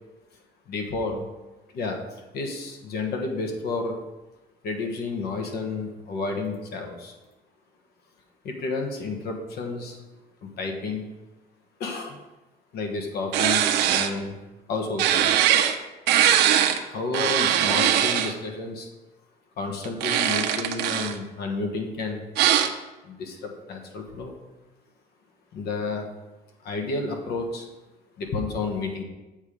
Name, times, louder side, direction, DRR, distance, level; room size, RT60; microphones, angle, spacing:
voice 1, 0.7-1.3 1.7-2.0 2.3-4.0 4.6-7.1 8.4-10.0 10.4-11.0 11.8-12.2 12.7-14.3 14.7-15.4 16.8-18.9 19.6-22.2 23.0-24.3 25.5-26.1 26.6-27.6 28.2-29.0, left 3 dB, 70° left, 3 dB, 1.4 m, -31 dB
sound 1, 13.3-14.1 15.0-15.8 16.1-16.8 17.1-18.3 19.8-21.2 22.4-22.7, right 10 dB, 85° right, 0.8 m, -21 dB
8.0 x 5.1 x 5.3 m, 1.1 s
cardioid pair, 110°, 17 cm